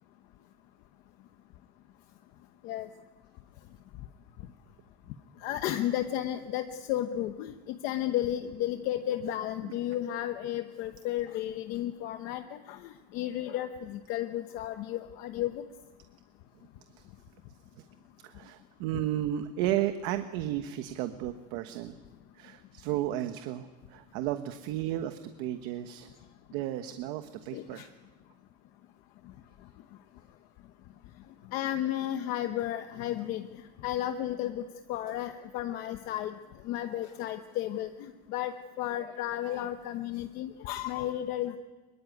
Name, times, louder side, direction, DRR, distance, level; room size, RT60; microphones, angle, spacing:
voice 1, 5.4-15.7 27.5-27.9 31.5-33.5 33.8-34.6 34.9-36.3 36.6-38.5 38.8-41.6, left 12 dB, 40° left, 8 dB, 1.0 m, -33 dB
voice 2, 18.2-22.0 22.3-26.1 26.5-27.9, right 12 dB, 55° right, 8 dB, 1.2 m, -33 dB
24.5 x 22.5 x 9.4 m, 1.2 s
cardioid pair, 180°, 21 cm